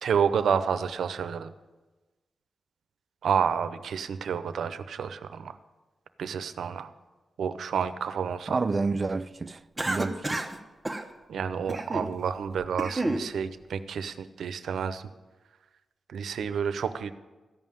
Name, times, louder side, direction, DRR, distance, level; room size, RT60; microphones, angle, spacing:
voice 1, 0.0-1.5 3.2-5.6 6.2-6.9 7.4-8.6 11.3-15.0 16.1-17.1, right 7 dB, 85° right, 0.6 m, -29 dB
voice 2, 8.5-10.5, right 3 dB, 35° right, 0.4 m, -30 dB
Cough, 9.8-10.6 10.8-11.1 11.7-12.1 12.6-13.3, right 2 dB, 15° right, 1.1 m, -30 dB
14.0 x 5.6 x 9.2 m
cardioid pair, 95°, 0 cm